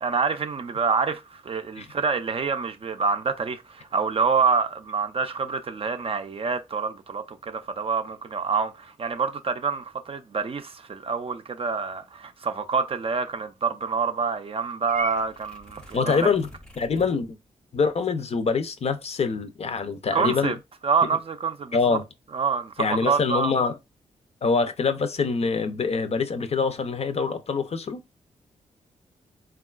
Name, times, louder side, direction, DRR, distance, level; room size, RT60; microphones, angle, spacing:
voice 1, 0.0-16.3 20.1-20.6 20.8-21.8 22.3-23.5, right 5 dB, 45° right, 0.4 m, -27 dB
Purr / Meow, 14.9-17.1, equal, 5° left, 0.6 m, -41 dB
voice 2, 15.9-16.5 16.8-17.4 17.7-20.5 21.7-22.0 22.8-23.7 24.4-28.0, left 5 dB, 50° left, 0.5 m, -25 dB
3.6 x 2.3 x 2.3 m
cardioid pair, 60°, 14 cm